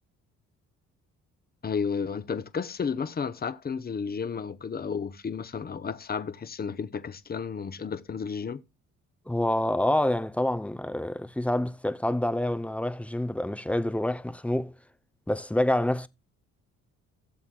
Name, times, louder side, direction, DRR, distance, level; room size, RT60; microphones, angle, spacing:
voice 1, 1.6-8.6, left 6 dB, 30° left, 0.8 m, -32 dB
voice 2, 9.3-14.7 15.3-16.1, left 1 dB, 5° left, 0.5 m, -27 dB
16.5 x 7.2 x 2.2 m
cardioid pair, 90°, 30 cm